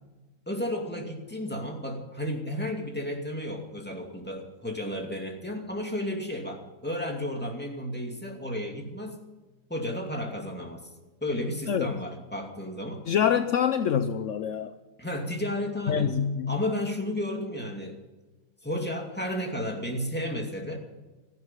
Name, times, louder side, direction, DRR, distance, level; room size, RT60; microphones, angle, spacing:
voice 1, 0.5-9.2 9.7-10.9 11.2-13.0 15.0-16.1 16.5-18.0 18.6-20.8, left 1 dB, 5° left, 2 dB, 2.3 m, -33 dB
voice 2, 11.7-12.0 13.1-14.7 15.9-16.6, left 8 dB, 65° left, 10 dB, 0.7 m, -26 dB
17.0 x 14.5 x 5.8 m, 1.2 s
omnidirectional pair, 2.0 m